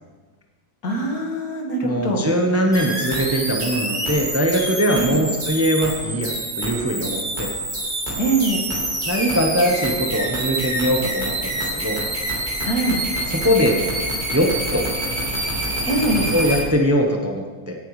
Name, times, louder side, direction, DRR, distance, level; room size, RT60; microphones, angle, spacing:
voice 1, 0.8-2.2 4.9-5.2 8.2-8.6 12.6-13.0 15.9-16.3, right 2 dB, 70° left, 0 dB, 2.3 m, -22 dB
voice 2, 1.8-7.5 9.0-12.0 13.3-13.9 14.3-14.9 16.3-17.8, equal, 10° right, 1 dB, 0.8 m, -21 dB
sound 1, 2.7-16.6, right 1 dB, 30° right, 2.4 m, -26 dB
16.5 x 8.9 x 3.2 m, 1.3 s
omnidirectional pair, 1.6 m